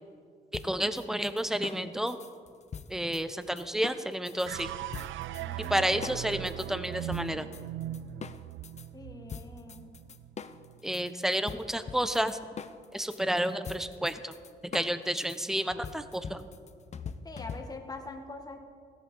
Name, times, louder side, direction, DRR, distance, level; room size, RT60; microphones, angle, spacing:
sound 1, 0.5-4.5 4.9-5.7 6.0-8.9 9.3-18.0, left 6 dB, 35° left, 0.6 m, -43 dB
voice 1, 0.6-2.2 2.9-4.7 5.7-7.5 10.8-12.4 12.9-14.3 14.6-16.5, right 1 dB, ahead, 11 dB, 0.7 m, -30 dB
sound 2, 4.5-10.8, right 14 dB, 75° right, 0.4 m, -39 dB
voice 2, 5.4-6.2 8.9-9.9 17.2-18.6, left 3 dB, 20° left, 4 dB, 1.3 m, -44 dB
15.5 x 13.5 x 3.8 m, 2.1 s
cardioid pair, 90°, 20 cm